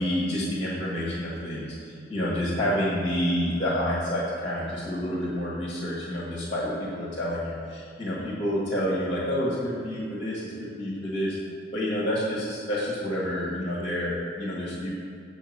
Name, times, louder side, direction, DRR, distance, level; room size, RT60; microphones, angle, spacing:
voice 1, 0.0-11.4 11.7-14.9, equal, 30° left, -6 dB, 1.5 m, -29 dB
7.8 x 4.1 x 6.5 m, 2.5 s
head